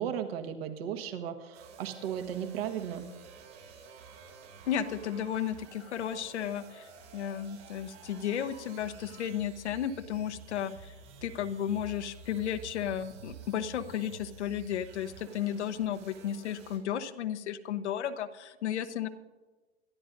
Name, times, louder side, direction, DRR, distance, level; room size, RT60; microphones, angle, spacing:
voice 1, 0.0-3.1, right 9 dB, 60° right, 6 dB, 1.5 m, -35 dB
sound 1, 1.5-16.8, right 5 dB, 80° right, 5.4 m, -51 dB
voice 2, 4.7-10.9 11.2-19.1, left 9 dB, 75° left, 9 dB, 1.1 m, -34 dB
28.0 x 12.5 x 2.6 m, 1.3 s
hypercardioid pair, 115°, 34 cm